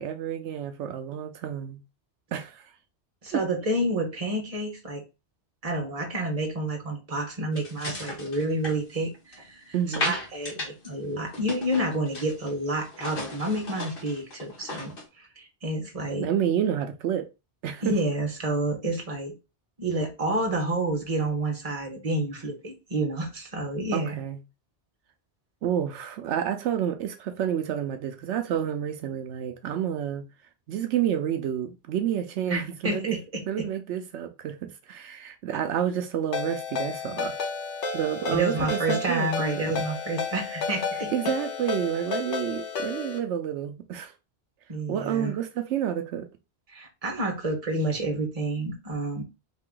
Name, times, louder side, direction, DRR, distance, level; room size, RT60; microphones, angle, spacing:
voice 1, 0.0-1.8 2.3-2.7 3.3-3.4 9.7-10.1 16.1-17.3 17.6-18.0 23.9-24.4 25.6-30.2 30.7-33.2 33.5-37.3 37.9-39.3 39.6-39.7 41.1-44.1 44.9-46.3, right 9 dB, 85° right, 0.9 m, -29 dB
voice 2, 3.2-5.0 5.6-9.7 10.0-16.3 17.8-19.3 19.8-24.2 32.5-33.7 38.3-41.1 44.7-45.3 46.7-49.2, right 1 dB, 35° right, 1.3 m, -29 dB
sound 1, 7.6-9.5 9.9-10.9 11.1-12.5 12.8-15.1, left 2 dB, 55° left, 1.4 m, -35 dB
Ringtone, 36.3-43.2, left 4 dB, 85° left, 1.2 m, -32 dB
4.2 x 2.8 x 3.7 m
omnidirectional pair, 1.2 m